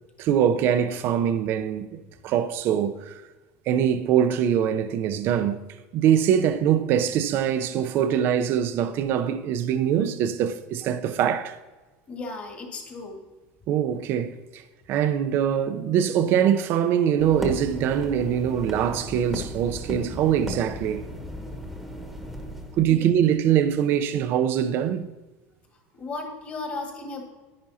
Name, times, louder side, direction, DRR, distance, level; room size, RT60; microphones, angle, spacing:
voice 1, 0.2-3.2 3.7-5.6 5.9-11.6 13.7-14.6 14.9-21.0 22.8-25.1, right 9 dB, 45° right, 0.6 m, -23 dB
voice 2, 12.1-13.2 22.9-23.0 25.9-27.2, left 3 dB, 25° left, 1.7 m, -35 dB
sound 1, 17.2-22.9, equal, ahead, 1.2 m, -35 dB
10.5 x 10.0 x 2.8 m
cardioid pair, 155°, 5 cm